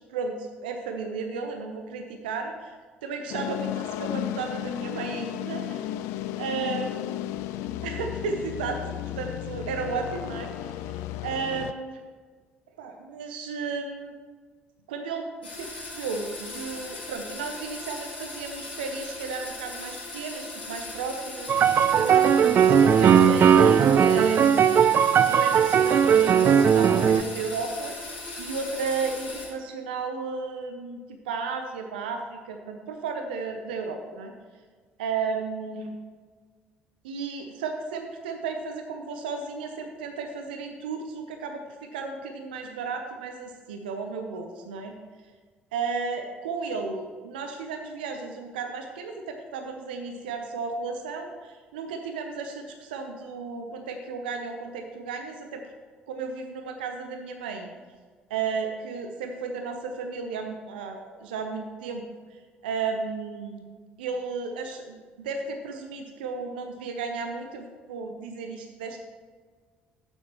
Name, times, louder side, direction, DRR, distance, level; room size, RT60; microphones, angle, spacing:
voice 1, 0.0-2.8 3.0-5.8 6.4-6.9 7.8-8.8 9.1-12.0 12.8-14.1 14.9-24.8 25.2-34.3 35.0-36.0 37.0-45.0 45.7-55.6 56.1-57.7 58.3-62.0 62.6-63.6 64.0-69.0, right 4 dB, 75° right, 5 dB, 0.7 m, -34 dB
sound 1, 3.3-11.7, left 13 dB, 65° left, 0.4 m, -34 dB
sound 2, 15.4-29.5, left 2 dB, 85° left, 2.0 m, -39 dB
sound 3, 21.5-27.2, right 8 dB, 45° right, 0.4 m, -18 dB
12.5 x 8.8 x 3.1 m, 1.5 s
figure-of-eight pair, 50°, 5 cm